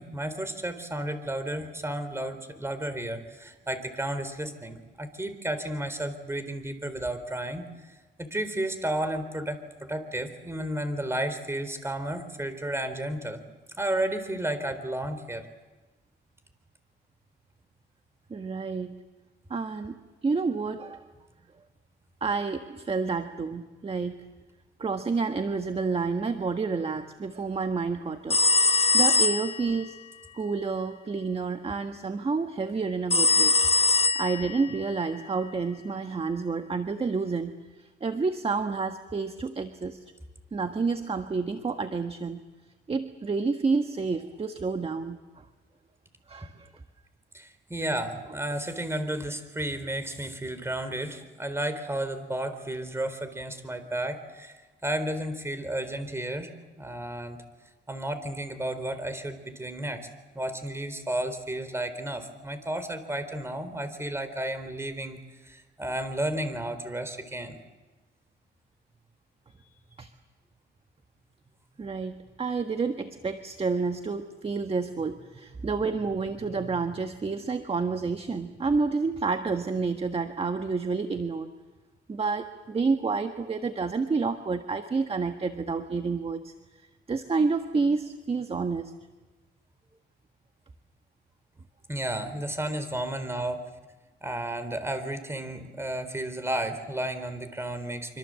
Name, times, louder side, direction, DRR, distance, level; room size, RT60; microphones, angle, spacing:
voice 1, 0.0-13.4 13.8-15.5 47.3-56.5 56.8-57.4 57.9-60.1 60.3-67.6 91.9-93.6 94.2-98.2, right 1 dB, 15° right, 10 dB, 3.9 m, -32 dB
voice 2, 18.3-19.0 19.5-19.9 20.2-21.0 22.2-24.2 24.8-30.0 30.3-33.6 33.9-37.5 37.8-40.0 40.5-42.4 42.9-45.2 46.3-46.7 70.0-70.1 71.8-81.5 82.1-86.5 87.1-88.9, right 4 dB, 30° right, 7 dB, 1.5 m, -29 dB
sound 1, 28.3-29.7 33.1-34.7, left 3 dB, 30° left, 1.0 m, -22 dB
26.0 x 25.5 x 7.7 m, 1.2 s
cardioid pair, 90°, 20 cm